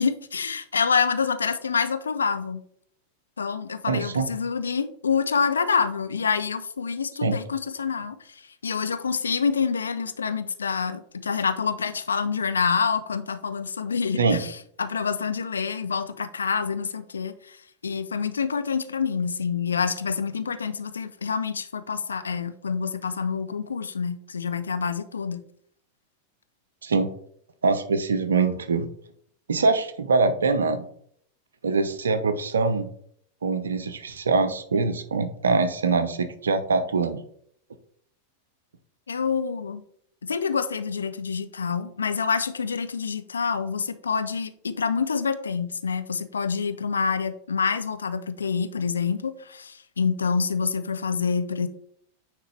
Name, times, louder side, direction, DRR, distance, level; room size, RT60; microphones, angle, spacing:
voice 1, 0.0-2.6 3.4-17.6 17.8-25.4 39.1-39.8 40.2-51.7, left 5 dB, 70° left, 10 dB, 0.5 m, -27 dB
voice 2, 3.9-4.3 7.2-7.4 14.2-14.4 26.8-27.1 27.6-28.9 29.5-30.8 31.6-32.9 33.4-37.2, right 4 dB, 70° right, 10 dB, 0.7 m, -23 dB
9.5 x 3.3 x 3.3 m, 0.65 s
figure-of-eight pair, 90°, 0 cm